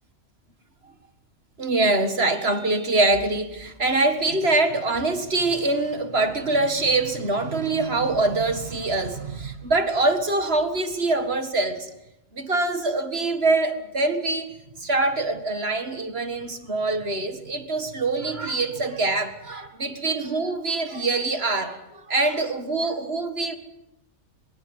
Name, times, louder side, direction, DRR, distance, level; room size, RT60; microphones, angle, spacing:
voice 1, 1.6-11.9 12.3-14.5 14.8-23.6, right 2 dB, 50° right, 8 dB, 2.0 m, -24 dB
24.0 x 22.0 x 8.0 m, 0.87 s
omnidirectional pair, 1.4 m